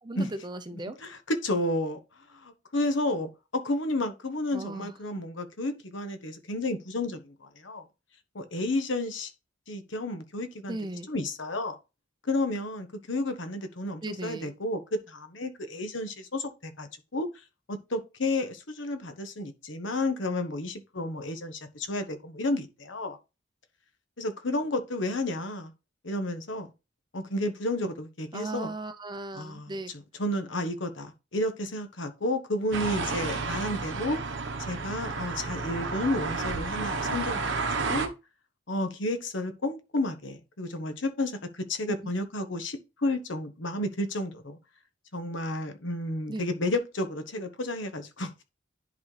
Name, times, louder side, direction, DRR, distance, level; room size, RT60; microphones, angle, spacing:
voice 1, 0.0-1.0 4.5-4.9 10.7-11.1 14.0-14.5 28.3-29.9 46.3-46.5, right 2 dB, 25° right, 0.6 m, -37 dB
voice 2, 1.0-2.0 2.3-7.8 8.3-9.3 9.7-10.8 11.1-11.8 12.2-14.8 15.1-17.3 17.7-23.2 24.2-25.7 26.0-26.7 27.1-28.7 29.3-34.2 34.7-37.5 37.9-38.1 38.7-44.6 45.1-48.3, left 1 dB, 75° left, 1.2 m, -31 dB
sound 1, 32.7-38.1, right 4 dB, 70° right, 1.1 m, -31 dB
10.5 x 4.2 x 3.3 m
head